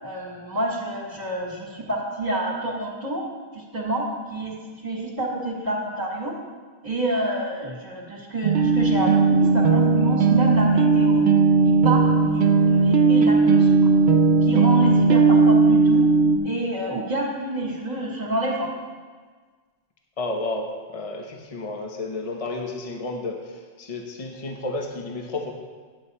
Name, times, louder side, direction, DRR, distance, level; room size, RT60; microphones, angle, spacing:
voice 1, 0.0-3.2 3.5-4.5 4.8-6.4 6.8-11.3 11.6-13.9 14.4-16.1 16.4-18.7, right 1 dB, 40° right, -1 dB, 2.0 m, -28 dB
sound 1, 8.4-16.4, right 4 dB, 80° right, 0.9 m, -17 dB
voice 2, 20.2-25.5, left 2 dB, 35° left, 2 dB, 0.9 m, -31 dB
11.0 x 8.1 x 4.2 m, 1.5 s
omnidirectional pair, 1.1 m